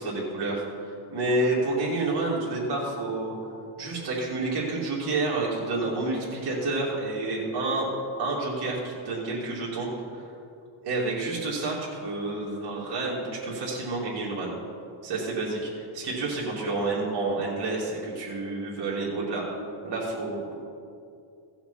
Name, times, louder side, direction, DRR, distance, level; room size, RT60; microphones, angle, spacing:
voice 1, 0.0-3.3 3.8-7.9 8.2-10.2 10.8-14.5 15.0-19.4 19.8-20.5, right 2 dB, 50° right, -5 dB, 2.8 m, -29 dB
16.5 x 5.8 x 5.7 m, 2.5 s
cardioid pair, 95°, 49 cm